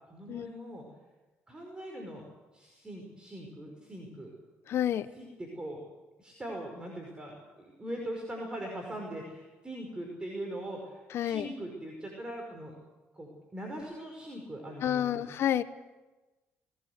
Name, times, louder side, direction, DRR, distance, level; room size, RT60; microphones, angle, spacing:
voice 1, 0.1-0.8 1.5-2.2 2.5-4.3 5.1-5.8 6.2-12.7 13.1-15.3, right 1 dB, 20° right, 1 dB, 5.4 m, -41 dB
voice 2, 4.7-5.1 11.1-11.5 14.8-15.6, left 11 dB, 60° left, 14 dB, 0.9 m, -29 dB
21.0 x 18.5 x 8.1 m, 1.1 s
supercardioid pair, 85°, 5 cm